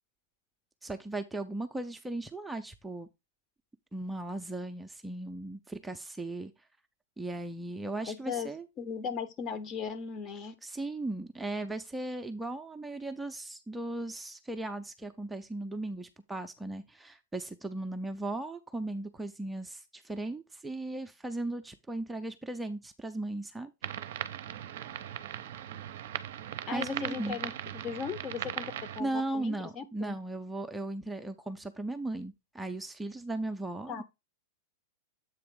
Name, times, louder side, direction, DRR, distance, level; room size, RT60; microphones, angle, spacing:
voice 1, 0.8-3.1 3.9-6.5 7.2-8.7 10.6-23.7 26.7-27.4 29.0-34.0, right 2 dB, 5° right, 0.5 m, -37 dB
voice 2, 8.1-8.5 8.8-10.5 26.7-30.2 33.9-34.0, left 6 dB, 30° left, 0.9 m, -37 dB
sound 1, 23.8-29.0, right 10 dB, 55° right, 0.6 m, -39 dB
7.8 x 3.3 x 4.8 m
figure-of-eight pair, 95°, 0 cm